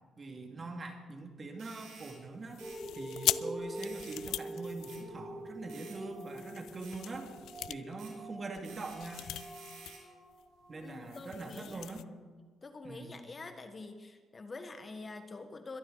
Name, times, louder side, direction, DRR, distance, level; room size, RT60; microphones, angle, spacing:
voice 1, 0.2-2.7 3.0-7.3 7.7-9.3 10.7-12.0 12.8-13.3, right 3 dB, 35° right, 4 dB, 2.2 m, -43 dB
sound 1, 1.6-2.2 2.6-2.8 3.7-4.2 4.9-5.0 5.7-6.0 6.8-7.0 8.0-8.1 8.6-10.0, right 5 dB, 85° right, 4.8 m, -53 dB
sound 2, 2.5-5.6 6.1-10.0 10.3-10.4 10.8-12.0, left 13 dB, 85° left, 0.3 m, -40 dB
sound 3, 2.6-11.5 12.1-12.2, right 1 dB, 20° right, 5.8 m, -45 dB
voice 2, 10.8-12.0 12.6-15.8, left 3 dB, 30° left, 8 dB, 1.3 m, -46 dB
22.0 x 12.5 x 3.9 m, 1.4 s
cardioid pair, 90°, 0 cm